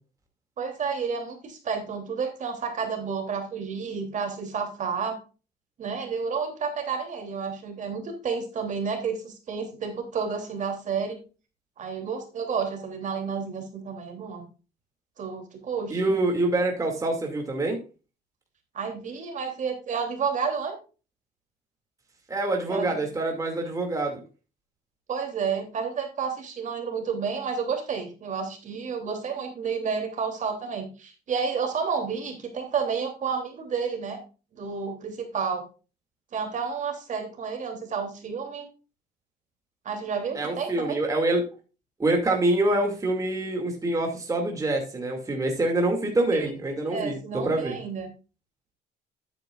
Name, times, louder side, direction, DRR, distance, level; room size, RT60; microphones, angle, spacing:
voice 1, 0.6-5.2 5.8-11.2 11.8-14.5 15.2-16.2 18.7-20.8 22.7-23.0 25.1-34.2 34.5-35.6 36.3-38.7 39.8-41.0 46.9-48.1, right 6 dB, 45° right, 4 dB, 3.1 m, -30 dB
voice 2, 15.9-17.8 22.3-24.2 40.3-41.4 42.0-47.8, right 2 dB, 20° right, 1 dB, 2.4 m, -26 dB
10.5 x 9.6 x 2.5 m, 0.33 s
cardioid pair, 110°, 17 cm